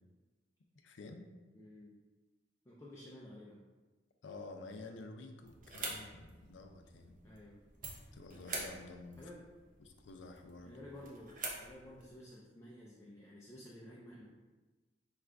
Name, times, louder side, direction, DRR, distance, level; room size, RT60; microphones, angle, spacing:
voice 1, 0.8-1.3 4.2-7.2 8.1-9.2 9.8-10.8, left 3 dB, 85° left, 5 dB, 0.5 m, -50 dB
voice 2, 1.5-1.9 2.6-3.6 7.2-7.6 9.2-9.4 10.7-14.3, left 1 dB, 15° left, -5 dB, 0.4 m, -53 dB
sound 1, 5.4-12.1, right 2 dB, 45° right, 0.7 m, -47 dB
4.8 x 2.4 x 3.3 m, 1.2 s
head